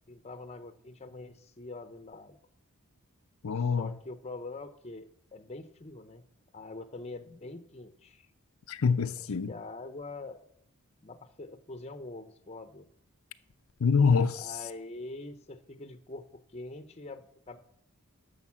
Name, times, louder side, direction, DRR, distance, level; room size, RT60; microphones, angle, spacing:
voice 1, 0.1-2.4 3.6-6.2 6.5-8.3 9.5-10.6 11.0-12.9 14.4-17.6, left 2 dB, 30° left, 0.7 m, -44 dB
voice 2, 3.4-3.9 8.7-9.5 13.8-14.5, left 5 dB, 75° left, 0.6 m, -25 dB
10.5 x 6.5 x 7.3 m
head